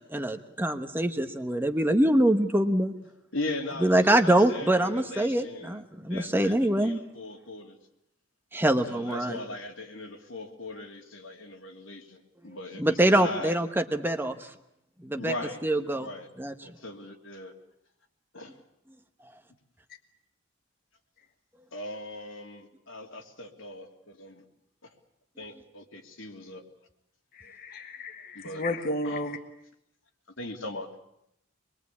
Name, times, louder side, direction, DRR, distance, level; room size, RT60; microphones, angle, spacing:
voice 1, 0.0-2.9 3.8-7.0 8.5-9.4 12.8-14.4 15.0-15.3 15.6-16.1 16.4-16.5, right 1 dB, 10° right, 7 dB, 1.1 m, -24 dB
voice 2, 3.3-7.8 8.8-13.6 15.2-15.6 15.9-16.3 16.6-17.5 18.3-18.5 21.7-24.4 24.8-24.9 25.4-26.6 28.3-28.6 29.0-29.2 30.4-30.9, left 2 dB, 80° left, 2 dB, 3.0 m, -39 dB
voice 3, 27.3-29.4, left 1 dB, 50° left, 5 dB, 1.5 m, -33 dB
25.5 x 22.0 x 8.5 m, 0.78 s
head